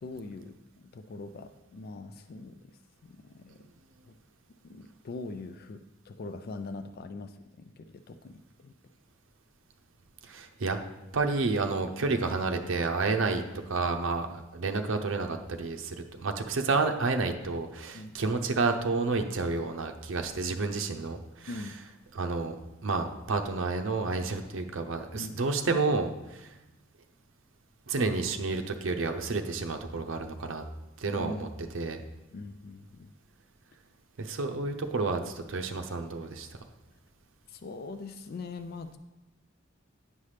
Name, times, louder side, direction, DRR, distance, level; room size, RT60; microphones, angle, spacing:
voice 1, 0.0-3.7 4.0-4.2 4.6-8.7 17.9-18.2 21.5-21.8 25.2-25.4 31.1-31.5 32.3-33.1 37.5-39.0, left 3 dB, 50° left, 9 dB, 0.3 m, -42 dB
voice 2, 10.2-10.8 11.1-21.5 22.1-22.6 22.8-26.5 27.9-30.6 31.0-31.5 31.7-32.0 34.2-36.5, right 3 dB, 75° right, 5 dB, 0.6 m, -30 dB
9.6 x 5.7 x 3.3 m, 1.0 s
head